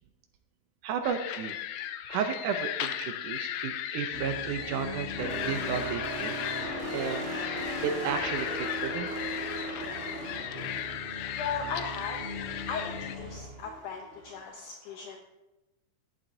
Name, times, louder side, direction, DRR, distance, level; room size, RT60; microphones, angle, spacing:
voice 1, 0.8-1.6 2.1-6.4 6.6-7.3 7.8-9.1, right 7 dB, 75° right, 7 dB, 2.0 m, -33 dB
sound 1, 1.0-13.2, left 11 dB, 90° left, 2.5 m, -36 dB
sound 2, 4.1-14.4, equal, 45° right, 0.8 m, -38 dB
voice 2, 11.3-12.2 12.7-15.2, left 5 dB, 75° left, 3 dB, 2.0 m, -37 dB
13.5 x 10.5 x 2.7 m, 1.0 s
omnidirectional pair, 4.1 m